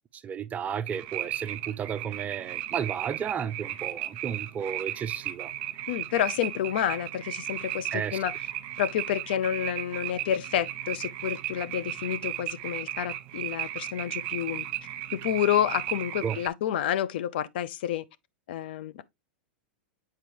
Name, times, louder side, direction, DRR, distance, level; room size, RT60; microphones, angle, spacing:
voice 1, 0.1-5.5 7.9-8.2 16.2-16.4, right 8 dB, 25° right, 0.5 m, -33 dB
sound 1, 0.9-16.5, right 14 dB, 50° right, 1.0 m, -35 dB
voice 2, 5.9-8.3 8.8-14.6 15.2-18.0 18.5-19.0, left 10 dB, 65° left, 0.6 m, -29 dB
7.6 x 4.7 x 2.9 m
hypercardioid pair, 100°, 6 cm